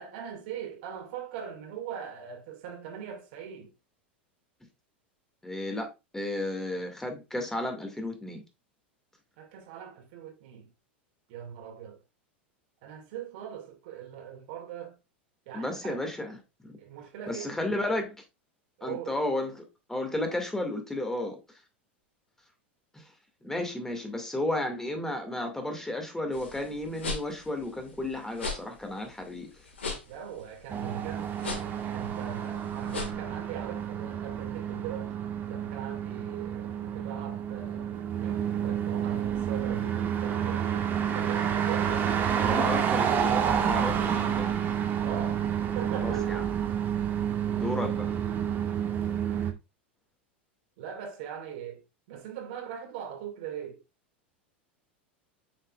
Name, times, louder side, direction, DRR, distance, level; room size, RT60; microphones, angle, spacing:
voice 1, 0.0-3.7 9.4-10.7 11.3-12.0 12.8-15.0 15.5-16.0 16.8-17.6 18.8-19.2 30.1-35.2 35.5-40.7 41.1-44.0 45.0-45.5 45.7-46.5 50.8-53.8, right 8 dB, 60° right, 2.2 m, -41 dB
voice 2, 5.4-8.4 15.5-16.3 16.6-16.8 17.3-18.2 18.8-19.5 19.9-21.4 22.9-23.0 23.4-29.5 42.4-44.6 46.0-46.4 47.5-48.1, left 1 dB, 5° left, 2.1 m, -33 dB
sound 1, 26.3-33.1, left 3 dB, 80° left, 1.9 m, -39 dB
sound 2, 30.7-49.5, right 9 dB, 35° right, 1.5 m, -29 dB
7.8 x 5.8 x 2.4 m
hypercardioid pair, 90°, 6 cm